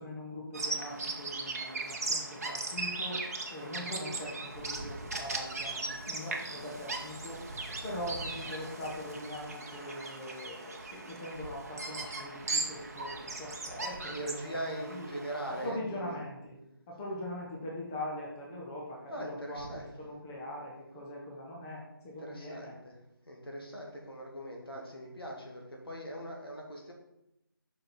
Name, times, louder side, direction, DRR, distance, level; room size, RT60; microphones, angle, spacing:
voice 1, 0.0-3.2 3.5-7.4 7.8-14.5 14.8-15.2 15.5-16.6 16.9-19.6 20.0-22.8, left 1 dB, 5° left, -3 dB, 0.7 m, -41 dB
Bird vocalization bird call bird song, 0.5-15.7, right 3 dB, 40° right, 0.9 m, -38 dB
voice 2, 14.0-16.2 19.1-19.9 22.2-23.0 23.3-26.9, right 1 dB, 80° left, -1 dB, 2.2 m, -41 dB
5.6 x 5.2 x 4.2 m, 0.86 s
figure-of-eight pair, 165°, 12 cm